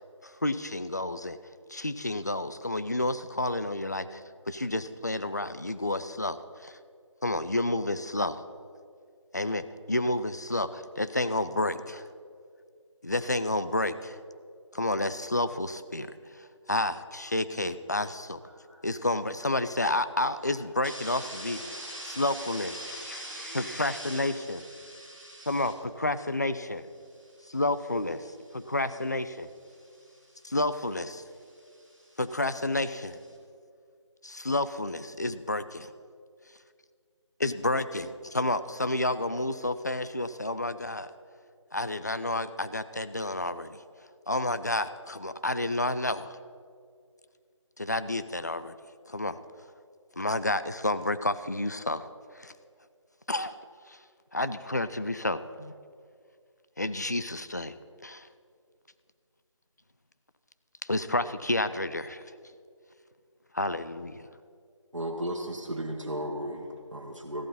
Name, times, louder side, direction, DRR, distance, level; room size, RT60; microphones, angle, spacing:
voice 1, 0.2-1.4 1.7-4.2 4.5-6.8 7.2-8.4 9.3-12.1 13.0-14.2 14.7-18.4 18.8-21.6 22.2-24.6 25.5-26.9 27.5-29.5 30.4-31.2 32.2-33.2 34.2-35.9 37.4-41.1 41.7-43.8 44.3-46.4 47.8-48.7 49.1-49.4 50.2-52.5 53.3-53.5 53.9-54.0 54.3-55.7 56.8-57.7 58.0-58.3 60.8-62.2 63.5-64.3, left 2 dB, 35° left, 13 dB, 0.4 m, -30 dB
voice 2, 18.4-18.8 20.5-25.7 27.0-27.6 28.5-28.7 29.6-30.5 31.3-32.2, right 1 dB, 5° right, -16 dB, 1.1 m, -44 dB
voice 3, 64.9-67.5, right 1 dB, 75° right, 0 dB, 1.5 m, -34 dB
14.5 x 12.5 x 4.2 m, 2.2 s
figure-of-eight pair, 165°, 16 cm